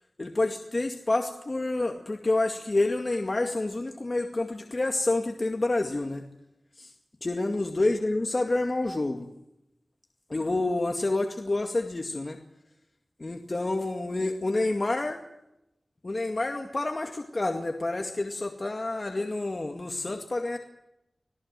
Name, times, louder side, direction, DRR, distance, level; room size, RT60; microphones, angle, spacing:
voice 1, 0.2-6.2 6.8-6.9 7.2-9.3 10.3-12.4 13.2-15.2 16.0-20.6, left 2 dB, 40° left, 4 dB, 2.1 m, -28 dB
26.5 x 17.5 x 7.6 m, 0.87 s
wide cardioid pair, 75°, 0 cm